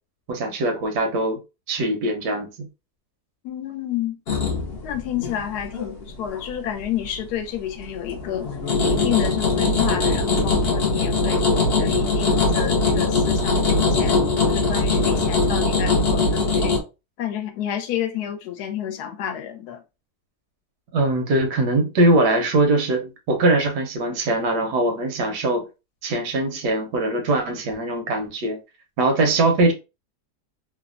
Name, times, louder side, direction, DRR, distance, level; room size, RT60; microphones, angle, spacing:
voice 1, 0.3-1.4 1.7-2.7 20.9-25.7 26.0-28.6 29.0-29.7, right 2 dB, 85° right, 1.3 m, -21 dB
voice 2, 3.4-4.2 4.8-8.5 8.8-11.4 11.8-16.8 17.2-19.8, left 10 dB, 75° left, 1.1 m, -29 dB
sound 1, 4.3-6.5 6.8-7.4 7.8-16.8, left 3 dB, 60° left, 0.6 m, -21 dB
3.2 x 2.0 x 2.4 m
omnidirectional pair, 1.8 m